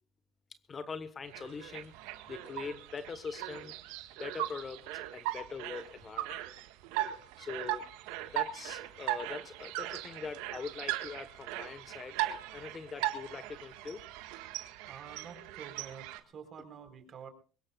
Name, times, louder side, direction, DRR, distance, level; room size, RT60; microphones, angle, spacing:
voice 1, 0.7-3.7 4.2-4.8 5.1-6.4 7.4-7.9 8.3-12.2 12.5-14.0, left 5 dB, 30° left, 12 dB, 1.3 m, -42 dB
sound 1, 1.3-16.2, right 14 dB, 85° right, 1.6 m, -39 dB
voice 2, 14.9-17.3, right 7 dB, 40° right, 7 dB, 4.1 m, -48 dB
23.0 x 20.5 x 2.4 m, 0.36 s
supercardioid pair, 105°, 0 cm